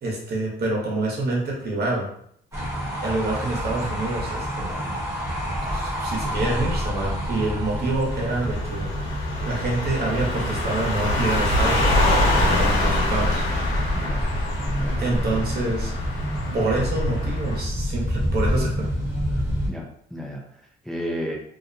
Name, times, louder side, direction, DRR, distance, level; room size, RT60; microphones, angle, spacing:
voice 1, 0.0-2.1 3.0-4.8 5.7-8.9 9.4-13.4 15.0-15.9 16.5-18.9, right 2 dB, 50° right, -3 dB, 1.1 m, -27 dB
sound 1, 2.5-19.7, equal, 15° right, 1.1 m, -27 dB
sound 2, 8.1-17.6, left 1 dB, 85° left, 0.8 m, -26 dB
voice 2, 13.9-14.3 14.7-15.7 19.7-21.4, equal, ahead, -1 dB, 0.4 m, -33 dB
2.6 x 2.2 x 2.6 m, 0.66 s
cardioid pair, 90°, 20 cm